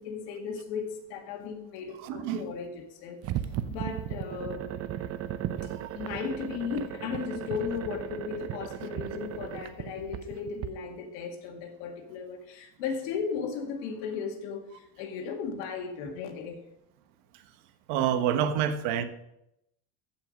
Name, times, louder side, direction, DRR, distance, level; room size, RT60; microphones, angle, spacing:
voice 1, 0.0-3.2 3.7-4.7 5.6-16.6, left 6 dB, 80° left, 2.2 m, -36 dB
voice 2, 2.0-2.5 5.6-5.9 17.9-19.0, right 9 dB, 75° right, 1.3 m, -28 dB
sound 1, 3.2-10.7, right 11 dB, 45° right, 0.8 m, -36 dB
15.0 x 5.7 x 5.2 m
cardioid pair, 130°, 33 cm